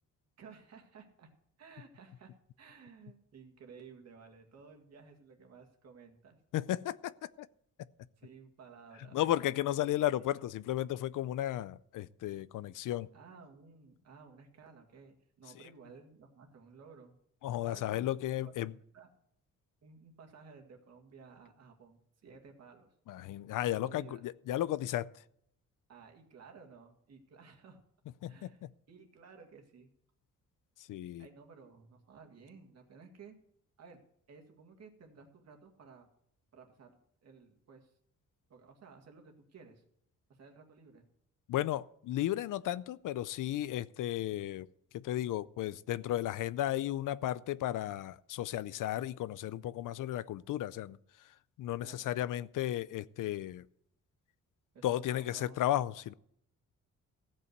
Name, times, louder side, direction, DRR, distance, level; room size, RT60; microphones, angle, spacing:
voice 1, 0.4-1.3 1.6-2.3 2.6-6.4 8.2-9.4 10.2-10.3 13.1-17.2 17.7-18.0 18.9-19.1 19.8-22.9 23.7-24.2 25.9-27.8 28.3-29.9 31.2-33.4 33.8-36.1 36.5-37.9 38.5-39.8 40.3-41.1 51.8-52.1 54.7-55.6 56.0-56.1, right 5 dB, 55° right, 2.0 m, -55 dB
voice 2, 6.5-7.5 9.1-13.1 17.4-18.7 23.1-25.1 28.2-28.7 30.9-31.3 41.5-44.7 44.9-51.0 51.6-53.6 54.8-56.1, left 13 dB, 85° left, 0.5 m, -34 dB
15.0 x 5.5 x 8.0 m
wide cardioid pair, 170°, 31 cm